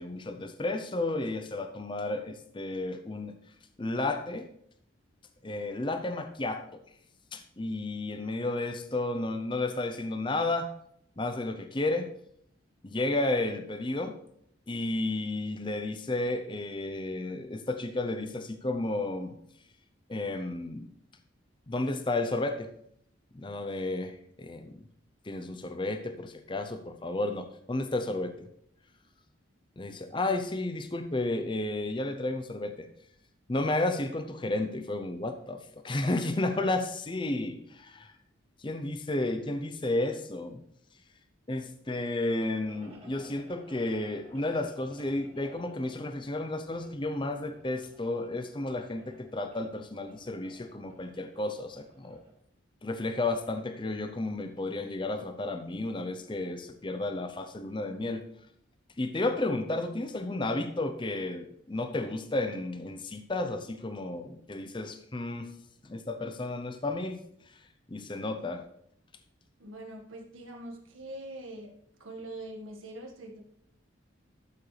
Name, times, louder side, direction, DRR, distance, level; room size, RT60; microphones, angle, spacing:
voice 1, 0.0-3.4 3.8-4.5 5.4-6.8 7.3-10.7 11.2-12.1 12.8-14.1 14.7-19.4 20.1-20.9 21.7-22.7 23.3-24.8 25.2-28.5 29.8-32.9 33.5-38.1 38.6-40.6 41.5-52.2 52.8-58.2 59.0-65.5 65.8-67.6 67.9-68.6, left 2 dB, 25° left, 8 dB, 0.6 m, -32 dB
sound 1, 42.6-52.3, equal, 30° right, 2.1 m, -56 dB
voice 2, 69.6-71.7 72.0-73.4, right 1 dB, 85° right, 2 dB, 1.7 m, -43 dB
12.5 x 7.1 x 3.3 m, 0.70 s
head